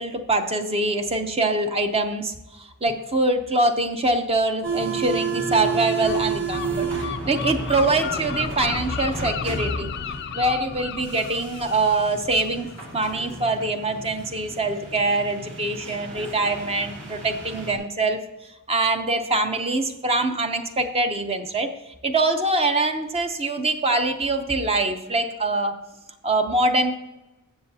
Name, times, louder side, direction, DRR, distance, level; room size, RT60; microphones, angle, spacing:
voice 1, 0.0-9.9 10.3-18.2 18.7-21.7 22.0-25.9 26.2-26.9, right 2 dB, 25° right, 6 dB, 0.7 m, -24 dB
sound 1, 4.6-17.8, right 5 dB, 55° right, 2.6 m, -32 dB
Gull seagull, 6.0-13.5, left 7 dB, 50° left, 0.4 m, -34 dB
15.0 x 6.8 x 2.8 m, 1.0 s
head